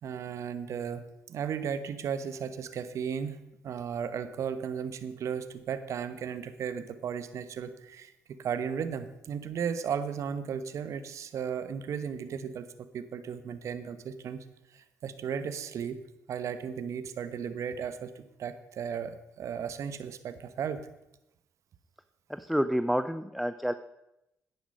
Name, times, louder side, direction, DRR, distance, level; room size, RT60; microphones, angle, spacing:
voice 1, 0.0-3.4 3.6-14.4 14.7-20.9, right 7 dB, 65° right, 12 dB, 1.0 m, -35 dB
voice 2, 22.3-23.7, equal, ahead, 11 dB, 0.5 m, -29 dB
10.0 x 9.8 x 5.4 m, 0.90 s
supercardioid pair, 65°, 6 cm